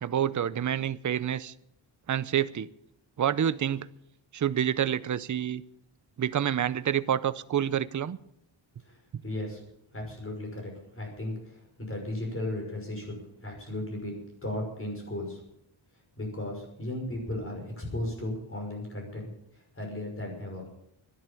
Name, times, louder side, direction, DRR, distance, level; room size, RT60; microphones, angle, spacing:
voice 1, 0.0-1.5 2.1-2.7 3.2-3.9 4.3-5.6 6.2-8.2, right 9 dB, 40° right, 15 dB, 0.6 m, -28 dB
voice 2, 8.8-9.6 9.9-15.4 16.2-20.6, left 1 dB, 25° left, 1 dB, 5.8 m, -36 dB
12.5 x 11.5 x 8.6 m, 0.76 s
wide cardioid pair, 135°, 47 cm